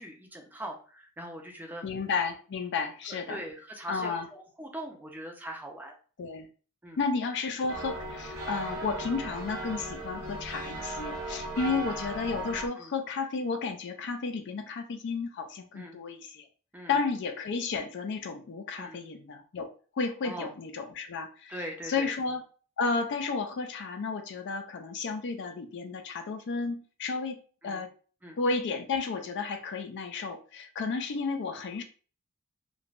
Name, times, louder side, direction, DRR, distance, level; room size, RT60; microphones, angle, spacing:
voice 1, 0.0-1.8 3.3-5.9 6.8-7.0 11.6-11.8 12.8-12.9 15.7-16.0 16.7-17.1 18.7-19.0 20.2-20.5 21.5-22.1 27.6-27.8 28.2-28.4, right 1 dB, 10° right, 1 dB, 0.5 m, -41 dB
voice 2, 1.8-3.4 3.9-4.3 6.2-6.5 7.0-16.5 16.9-19.7 20.0-21.5 21.9-22.4 22.8-27.4 27.6-27.9 28.4-31.8, left 4 dB, 55° left, 7 dB, 0.4 m, -32 dB
sound 1, 7.7-12.7, right 2 dB, 65° right, 0.7 m, -37 dB
3.2 x 2.1 x 2.4 m, 0.39 s
head